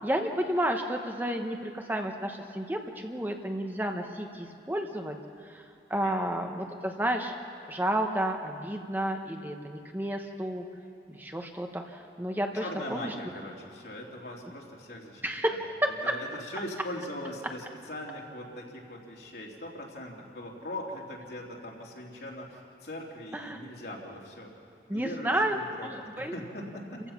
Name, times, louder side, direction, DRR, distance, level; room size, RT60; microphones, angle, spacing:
voice 1, 0.0-5.2 5.4-5.6 5.9-7.3 7.7-10.7 11.1-13.1 15.2-15.7 23.3-23.6 24.9-25.9 26.2-26.3, right 1 dB, 10° right, 4 dB, 1.0 m, -31 dB
voice 2, 12.5-15.6 16.0-24.5 24.9-27.0, left 1 dB, 65° left, -2 dB, 3.1 m, -40 dB
28.5 x 15.5 x 5.9 m, 2.6 s
head